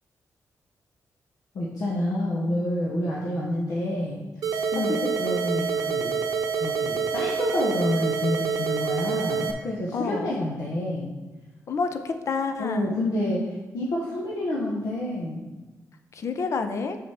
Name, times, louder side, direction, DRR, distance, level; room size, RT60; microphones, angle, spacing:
voice 1, 1.5-6.2 6.6-11.1 12.6-15.4, left 1 dB, 75° left, -4 dB, 1.1 m, -28 dB
sound 1, 4.4-9.5, right 6 dB, 80° right, 0.6 m, -27 dB
voice 2, 4.7-5.0 9.9-10.3 11.7-13.0 16.1-17.0, left 4 dB, 55° left, 7 dB, 0.6 m, -29 dB
6.3 x 4.0 x 5.8 m, 1.2 s
wide cardioid pair, 135°, 6 cm